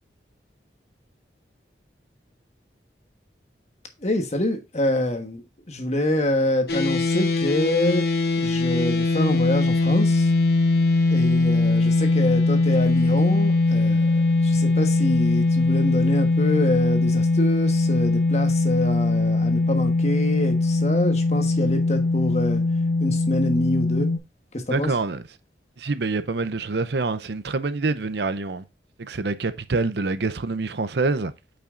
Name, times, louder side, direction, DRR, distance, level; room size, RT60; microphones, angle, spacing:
voice 1, 4.0-8.1 8.3-10.3 11.1-22.6 23.0-24.1 24.5-24.9, left 1 dB, 40° left, 1.3 m, -26 dB
sound 1, 6.7-24.2, left 3 dB, 60° left, 1.0 m, -21 dB
voice 2, 24.7-25.2 25.8-28.6 29.0-31.3, right 3 dB, 70° right, 0.6 m, -26 dB
8.6 x 5.6 x 2.5 m
head